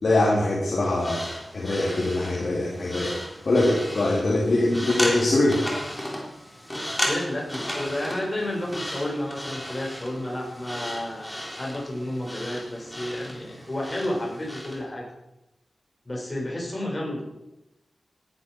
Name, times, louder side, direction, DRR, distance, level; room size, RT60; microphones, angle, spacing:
voice 1, 0.0-1.2 1.5-3.1 3.4-5.6, left 2 dB, 60° left, -5 dB, 3.1 m, -22 dB
sound 1, 0.9-14.8, equal, 10° left, 3.8 m, -34 dB
voice 2, 7.0-15.0 16.1-17.2, left 1 dB, 30° left, -2 dB, 5.4 m, -31 dB
17.0 x 11.0 x 4.6 m, 0.93 s
wide cardioid pair, 85°, 0 cm